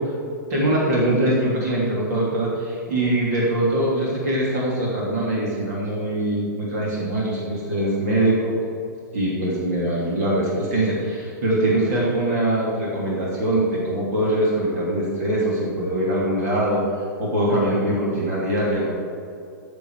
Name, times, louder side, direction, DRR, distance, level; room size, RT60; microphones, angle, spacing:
voice 1, 0.5-8.6 9.1-16.8 17.2-18.9, right 1 dB, 55° right, -5 dB, 3.2 m, -22 dB
14.5 x 7.7 x 5.0 m, 2.6 s
supercardioid pair, 170°, 10 cm